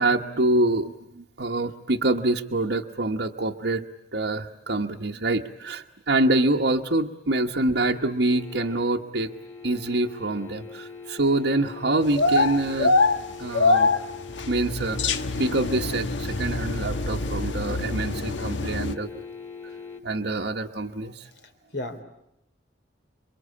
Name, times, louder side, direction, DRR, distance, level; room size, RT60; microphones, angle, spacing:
voice 1, 0.0-3.8 4.1-9.3 9.6-12.9 13.4-13.9 14.5-19.1 20.0-21.2, right 2 dB, 65° right, 0 dB, 1.2 m, -25 dB
sound 1, 7.7-20.0, left 5 dB, 15° left, 2.4 m, -42 dB
sound 2, 12.1-18.9, left 3 dB, 80° left, 1.4 m, -24 dB
voice 2, 21.2-22.0, left 1 dB, 65° left, 7 dB, 3.3 m, -36 dB
28.0 x 24.0 x 8.5 m, 0.83 s
head